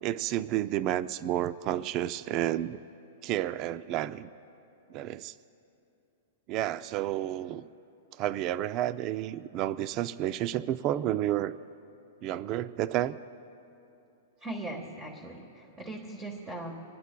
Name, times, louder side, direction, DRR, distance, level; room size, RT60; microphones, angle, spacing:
voice 1, 0.0-2.8 3.2-4.3 4.9-5.3 6.5-7.7 8.2-11.5 12.2-13.2, right 13 dB, 35° right, 15 dB, 0.3 m, -30 dB
voice 2, 14.4-16.7, right 2 dB, 15° right, 2 dB, 1.3 m, -39 dB
25.5 x 19.5 x 2.2 m, 2.7 s
hypercardioid pair, 150°, 0 cm